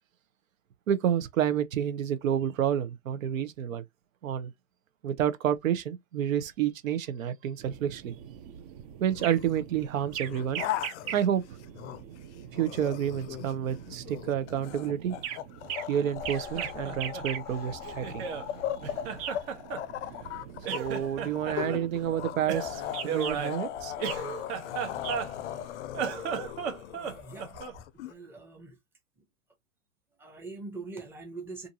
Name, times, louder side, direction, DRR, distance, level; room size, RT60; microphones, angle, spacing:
voice 1, 0.9-3.8 4.2-4.5 5.0-8.1 9.0-10.6 11.1-11.4 12.5-15.1 15.9-18.2 20.7-23.9, right 9 dB, 80° right, 0.7 m, -29 dB
sound 1, 7.6-25.7, right 9 dB, 30° right, 0.4 m, -42 dB
sound 2, 9.1-9.6 10.1-12.2 12.5-28.1, left 12 dB, 60° left, 0.5 m, -38 dB
Laughter, 16.2-18.5 18.8-20.4 20.6-21.8 22.5-25.6 25.9-27.8, right 7 dB, 50° right, 1.0 m, -35 dB
voice 2, 26.9-27.6 27.9-28.8 30.2-31.7, right 3 dB, 5° right, 0.7 m, -43 dB
2.6 x 2.5 x 2.7 m
hypercardioid pair, 125°, 40 cm